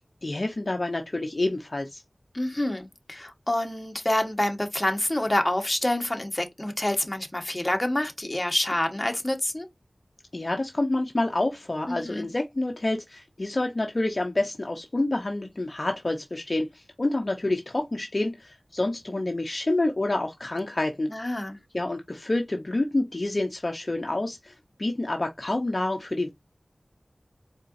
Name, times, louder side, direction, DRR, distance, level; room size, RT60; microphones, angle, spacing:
voice 1, 0.2-2.0 10.3-21.1 21.7-26.3, left 2 dB, 45° left, 0.8 m, -28 dB
voice 2, 2.3-9.7 11.9-12.3 21.1-21.6, left 1 dB, 25° left, 1.2 m, -27 dB
4.4 x 3.6 x 2.6 m
wide cardioid pair, 60°, 0 cm